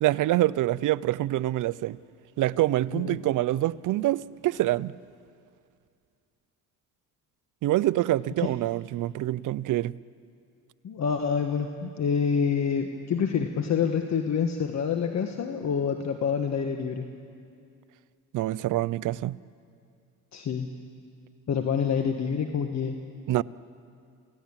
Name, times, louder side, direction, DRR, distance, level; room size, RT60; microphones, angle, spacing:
voice 1, 0.0-2.0 2.4-4.9 7.6-10.0 18.3-19.4 23.3-23.4, right 15 dB, 60° right, 0.6 m, -26 dB
voice 2, 10.8-17.1 20.3-20.7 21.5-23.0, left 6 dB, 50° left, 1.6 m, -27 dB
28.5 x 17.5 x 8.8 m
cardioid pair, 85°, 34 cm